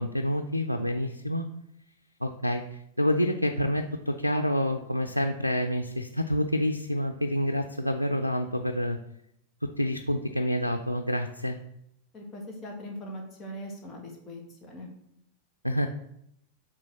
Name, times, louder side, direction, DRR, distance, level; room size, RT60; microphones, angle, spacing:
voice 1, 0.0-1.5 2.2-9.0 9.8-11.6 15.6-15.9, equal, 90° right, 3 dB, 0.4 m, -28 dB
voice 2, 12.1-14.9, equal, 25° left, 0 dB, 1.9 m, -41 dB
6.2 x 3.9 x 6.3 m, 0.76 s
figure-of-eight pair, 90°, 0 cm